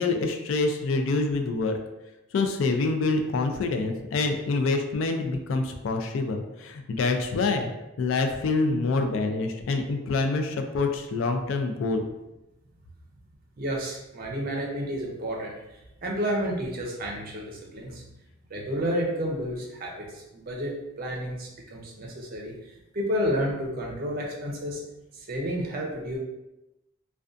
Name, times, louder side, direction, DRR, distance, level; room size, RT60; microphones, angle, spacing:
voice 1, 0.0-1.8 2.3-7.7 8.0-12.1, left 3 dB, 70° left, 5 dB, 0.3 m, -26 dB
voice 2, 13.6-18.0 18.5-24.8 25.1-26.2, equal, 45° right, -1 dB, 0.5 m, -31 dB
2.4 x 2.2 x 2.4 m, 0.95 s
head